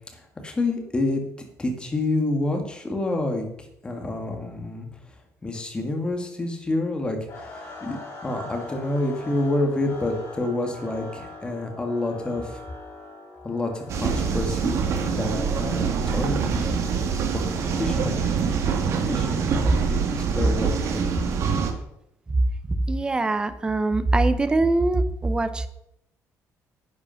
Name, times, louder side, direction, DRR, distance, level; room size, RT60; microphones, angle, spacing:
voice 1, 0.1-1.3 1.6-4.9 5.4-12.6 13.4-16.7 17.5-18.1 18.4-19.5 19.8-21.1, left 2 dB, 15° left, 3 dB, 1.9 m, -28 dB
sound 1, 7.3-21.4, left 2 dB, 50° left, 5.5 m, -43 dB
sound 2, 13.9-21.7, right 6 dB, 50° right, 1.7 m, -25 dB
voice 2, 22.7-25.7, right 2 dB, 15° right, 11 dB, 0.7 m, -23 dB
11.0 x 8.7 x 5.7 m, 0.79 s
cardioid pair, 165°, 6 cm